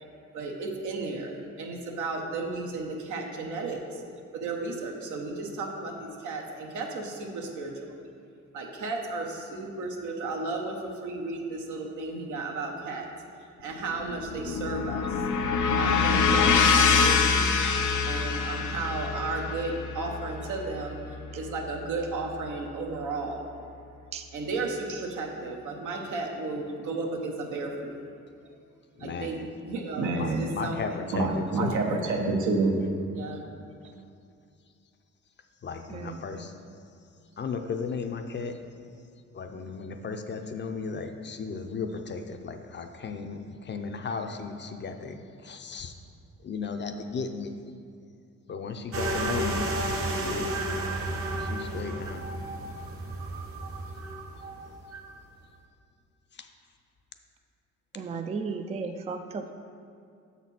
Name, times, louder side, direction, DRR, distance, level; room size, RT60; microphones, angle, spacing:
voice 1, 0.3-4.0 4.3-7.9 8.5-13.1 13.6-15.2 15.8-17.4 18.0-21.0 21.3-23.5 24.3-28.0 29.0-32.7 33.1-33.4, right 3 dB, 75° right, 2 dB, 1.0 m, -32 dB
sound 1, 13.8-22.1, left 5 dB, 75° left, 0.7 m, -25 dB
voice 2, 29.0-29.5 30.2-31.8 35.6-36.5 37.4-38.5 39.3-45.9 46.4-47.5 48.5-49.7 50.2-50.5 51.4-52.2 56.4-56.5, left 5 dB, 35° left, 6 dB, 0.5 m, -35 dB
voice 3, 35.9-36.3 58.0-59.5, right 4 dB, 20° right, 6 dB, 0.3 m, -34 dB
sound 2, 48.9-55.1, right 1 dB, 50° right, 1.0 m, -32 dB
6.9 x 4.1 x 5.9 m, 2.4 s
cardioid pair, 90°, 30 cm